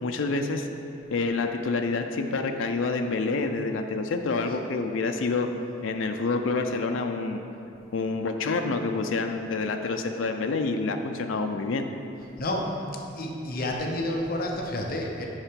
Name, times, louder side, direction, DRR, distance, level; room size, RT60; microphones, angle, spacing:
voice 1, 0.0-0.7 1.1-5.5 5.8-7.4 7.9-11.9, left 3 dB, 80° left, 5 dB, 0.5 m, -27 dB
voice 2, 13.1-15.2, left 1 dB, 50° left, 1 dB, 0.8 m, -29 dB
7.3 x 5.7 x 5.2 m, 2.8 s
head